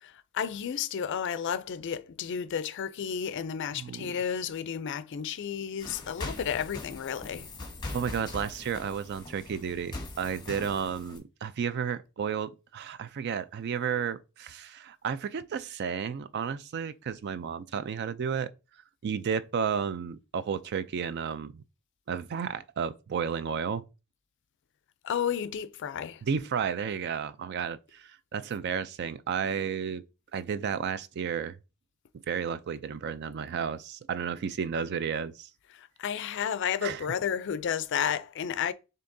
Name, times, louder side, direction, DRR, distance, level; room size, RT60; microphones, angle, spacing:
voice 1, 0.0-7.5 25.0-26.2 35.7-38.7, left 8 dB, 60° left, 0.4 m, -32 dB
voice 2, 3.8-4.2 7.9-18.5 19.0-21.6 22.1-23.8 26.2-30.0 30.3-31.6 32.3-35.5 36.8-37.0, right 7 dB, 50° right, 0.3 m, -32 dB
sound 1, 5.8-11.2, left 2 dB, 20° left, 1.0 m, -41 dB
6.9 x 2.8 x 2.6 m
head